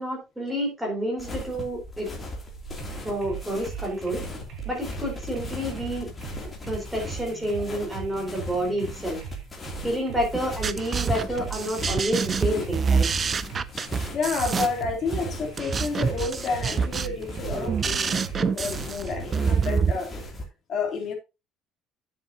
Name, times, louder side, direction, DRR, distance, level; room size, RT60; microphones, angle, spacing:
voice 1, 0.0-2.1 3.0-4.2 4.6-6.1 6.7-9.2 9.8-13.1, equal, 5° right, 4.3 m, -29 dB
sound 1, 1.2-20.4, left 2 dB, 20° left, 2.7 m, -39 dB
sound 2, 2.8-19.7, right 6 dB, 60° right, 4.9 m, -39 dB
sound 3, 10.3-19.9, right 6 dB, 25° right, 0.5 m, -26 dB
voice 2, 13.7-20.1 20.7-21.1, left 4 dB, 40° left, 3.1 m, -30 dB
10.0 x 7.5 x 2.8 m
cardioid pair, 150°, 0 cm